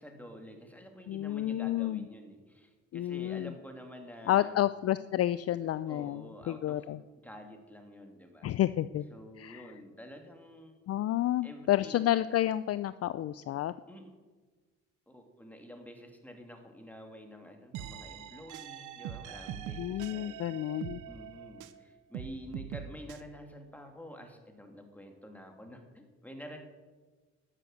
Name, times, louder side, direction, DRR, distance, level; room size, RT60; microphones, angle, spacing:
voice 1, 0.0-4.6 5.9-6.9 7.2-8.5 9.1-11.1 11.4-12.0 13.9-14.0 15.1-20.5 21.1-26.6, equal, 5° left, 3 dB, 2.8 m, -49 dB
voice 2, 1.1-2.0 2.9-3.5 4.3-7.0 8.4-9.0 9.4-9.7 10.9-13.7 19.8-21.0, left 13 dB, 50° left, 14 dB, 0.5 m, -30 dB
sound 1, 17.7-21.8 22.1-23.2, right 10 dB, 75° right, 0.9 m, -43 dB
12.0 x 7.8 x 7.9 m, 1.4 s
supercardioid pair, 65°, 31 cm